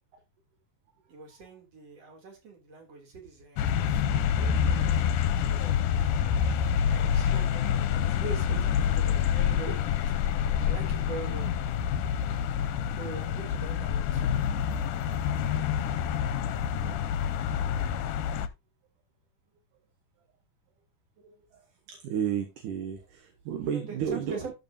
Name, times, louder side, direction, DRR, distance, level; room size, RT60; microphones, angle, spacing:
voice 1, 1.1-3.8 4.3-5.9 6.9-9.9 10.7-11.5 13.0-14.4 23.7-24.5, right 3 dB, 45° right, 3.9 m, -42 dB
sound 1, 3.6-18.5, left 8 dB, 75° left, 2.1 m, -27 dB
voice 2, 21.2-24.4, right 8 dB, 70° right, 2.6 m, -34 dB
12.5 x 7.1 x 2.7 m
omnidirectional pair, 4.1 m